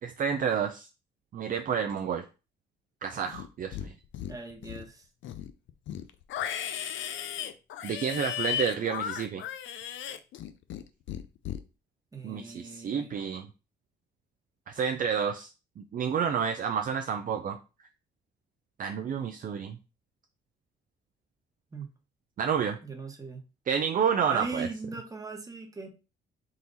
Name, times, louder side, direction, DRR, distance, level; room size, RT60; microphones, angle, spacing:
voice 1, 0.0-0.9 1.3-2.2 3.0-3.9 7.8-9.4 12.2-13.5 14.7-15.5 15.8-17.6 18.8-19.8 22.4-22.8 23.7-24.7, right 7 dB, 45° right, 7 dB, 0.4 m, -29 dB
Livestock farm animals working animals, 3.2-3.9 4.1-4.9 5.2-10.8 11.1-11.6, left 10 dB, 75° left, 0.5 m, -35 dB
voice 2, 4.3-5.0 12.1-13.1 21.7-21.9 22.8-23.4 24.3-25.9, right 3 dB, 15° right, 3 dB, 1.2 m, -39 dB
3.8 x 2.8 x 4.0 m, 0.31 s
cardioid pair, 90°, 20 cm